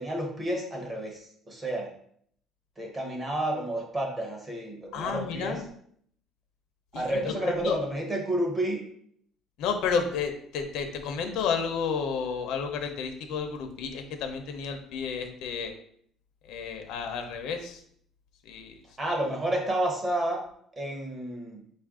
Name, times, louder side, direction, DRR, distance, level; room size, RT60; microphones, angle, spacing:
voice 1, 0.0-1.9 2.8-5.6 6.9-8.8 19.0-20.4 20.7-21.6, right 1 dB, 20° right, 1 dB, 0.7 m, -30 dB
voice 2, 4.9-5.6 6.9-7.2 7.5-7.8 9.6-15.7 16.5-17.8 18.4-18.8, left 6 dB, 65° left, 6 dB, 0.6 m, -31 dB
5.0 x 2.4 x 3.6 m, 0.65 s
cardioid pair, 175°, 0 cm